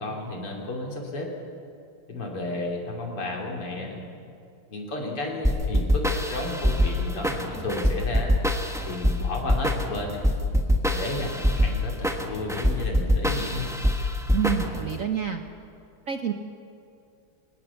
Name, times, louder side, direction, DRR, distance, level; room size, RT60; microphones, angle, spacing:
voice 1, 0.0-1.3 2.1-4.1 4.7-8.3 8.9-10.2 10.9-13.7, left 2 dB, 80° left, 0 dB, 4.0 m, -32 dB
sound 1, 5.4-15.0, equal, ahead, 0.9 m, -24 dB
voice 2, 14.3-15.4 16.1-16.3, right 8 dB, 55° right, 6 dB, 0.9 m, -27 dB
23.0 x 19.0 x 7.1 m, 2.5 s
omnidirectional pair, 2.4 m